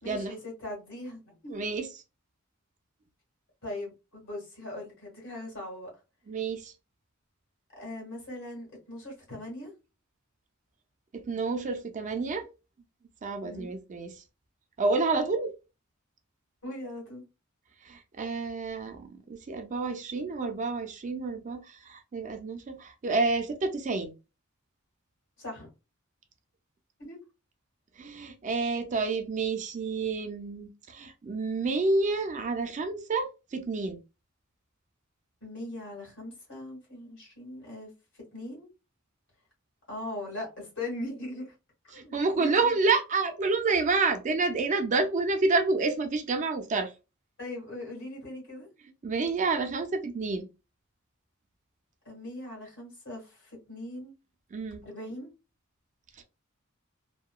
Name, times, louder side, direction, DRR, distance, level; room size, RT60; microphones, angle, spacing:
voice 1, 0.0-1.6 3.6-5.9 7.8-9.7 13.4-13.7 16.6-17.2 25.4-25.7 27.0-27.2 35.4-37.9 38.3-38.7 39.9-41.5 41.9-42.7 47.4-48.7 52.0-54.1 54.8-55.3, left 1 dB, 60° left, 1.5 m, -40 dB
voice 2, 1.5-1.9 6.3-6.7 11.3-12.5 13.2-14.2 14.8-15.5 17.8-24.1 28.0-34.0 41.9-46.9 49.0-50.5 54.5-54.8, right 3 dB, 35° right, 0.4 m, -29 dB
2.8 x 2.2 x 2.2 m
head